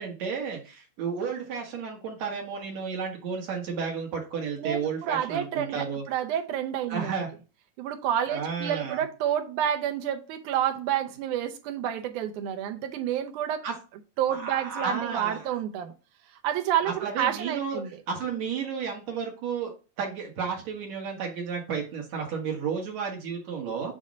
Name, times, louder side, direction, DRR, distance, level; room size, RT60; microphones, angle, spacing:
voice 1, 0.0-6.0 6.9-7.3 8.3-9.0 13.6-13.7 14.3-15.6 16.9-19.7 20.0-23.9, right 6 dB, 60° right, 2.4 m, -32 dB
voice 2, 4.6-7.1 7.8-13.6 14.2-15.9 16.4-17.9, right 10 dB, 75° right, 2.1 m, -29 dB
7.4 x 2.7 x 5.1 m
omnidirectional pair, 3.9 m